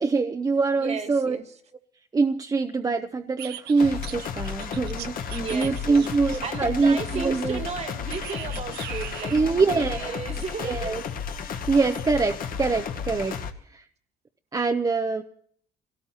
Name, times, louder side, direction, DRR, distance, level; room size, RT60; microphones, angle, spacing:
voice 1, 0.0-1.4 2.1-7.6 9.3-10.2 10.6-11.0 11.4-13.4 13.7-13.9 14.5-15.2, right 4 dB, 20° right, 0.7 m, -24 dB
voice 2, 0.8-1.4 5.3-11.1, right 5 dB, 40° right, 1.5 m, -34 dB
sound 1, 3.4-6.6 8.1-9.6, right 12 dB, 75° right, 0.7 m, -40 dB
sound 2, 3.8-13.5, left 6 dB, 55° left, 1.3 m, -33 dB
25.0 x 17.5 x 2.9 m
cardioid pair, 110°, 17 cm